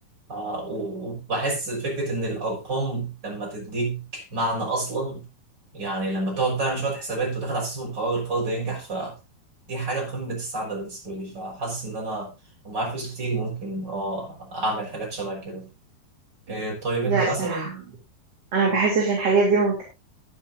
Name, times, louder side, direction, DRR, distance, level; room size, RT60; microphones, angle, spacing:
voice 1, 0.3-5.2 5.7-9.2 9.7-12.3 12.6-15.7 16.5-17.7, right 2 dB, 25° right, -1 dB, 6.8 m, -29 dB
voice 2, 17.1-17.8 18.5-19.8, right 4 dB, 40° right, -2 dB, 4.1 m, -22 dB
21.5 x 7.6 x 2.7 m, 0.26 s
omnidirectional pair, 4.7 m